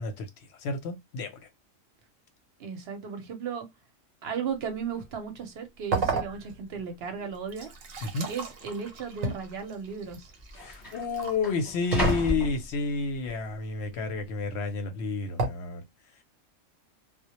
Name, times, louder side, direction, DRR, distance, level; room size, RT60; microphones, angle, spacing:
voice 1, 0.0-1.4 8.0-8.3 10.5-15.8, left 4 dB, 65° left, 0.8 m, -31 dB
voice 2, 2.6-3.7 4.2-7.7 8.3-10.3, right 6 dB, 60° right, 0.8 m, -35 dB
sound 1, 4.5-4.6 4.9-5.3 6.0-6.1 6.8-7.3 7.6-7.7 8.6-8.8 9.8-9.9 10.1-13.3 13.8-14.2, left 1 dB, 20° left, 0.8 m, -35 dB
sound 2, 5.9-6.8 7.3-11.4 11.9-12.6 15.4-15.5, right 3 dB, 85° right, 1.0 m, -32 dB
2.1 x 2.1 x 2.8 m
omnidirectional pair, 1.4 m